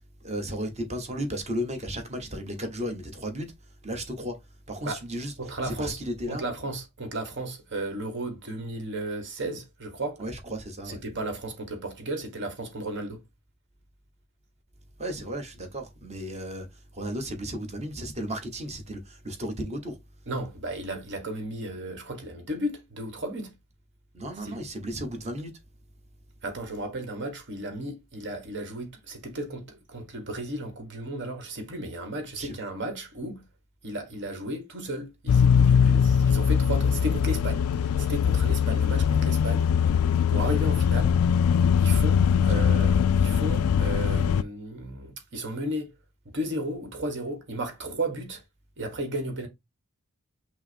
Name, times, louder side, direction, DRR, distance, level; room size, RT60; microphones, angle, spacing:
voice 1, 0.2-3.5 3.8-4.4 4.7-5.3 5.6-6.4 10.2-11.0 15.0-20.0 24.1-25.5 32.4-32.5 42.5-42.7, equal, 30° right, 1.1 m, -34 dB
voice 2, 5.4-6.0 6.3-10.2 10.8-13.2 20.3-23.5 24.4-24.6 26.4-33.4 33.8-39.7 40.3-41.2 41.8-45.9 46.2-48.4 48.8-49.5, right 1 dB, 55° right, 1.3 m, -34 dB
sound 1, 35.3-44.4, left 7 dB, 85° left, 0.3 m, -21 dB
5.6 x 2.0 x 4.3 m
head